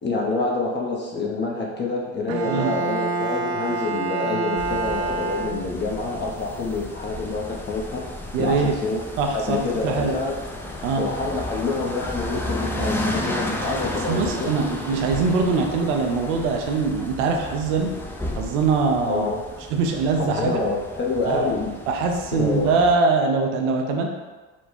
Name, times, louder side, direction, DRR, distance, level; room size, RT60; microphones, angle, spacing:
voice 1, 0.0-8.0 8.4-9.0 9.3-10.4 11.0-14.5 19.0-19.4 20.2-21.8 22.3-22.7, left 3 dB, 30° left, -2 dB, 0.9 m, -27 dB
Bowed string instrument, 2.3-6.0, right 3 dB, 45° right, 0.4 m, -27 dB
sound 1, 4.6-23.0, left 1 dB, 5° left, 0.5 m, -33 dB
voice 2, 8.3-8.7 9.2-10.1 10.8-11.0 14.1-17.9 18.4-19.3 19.7-20.6 21.2-21.5 21.9-24.1, right 4 dB, 80° right, 2 dB, 0.7 m, -22 dB
4.4 x 2.2 x 4.3 m, 1.3 s
hypercardioid pair, 75°, 36 cm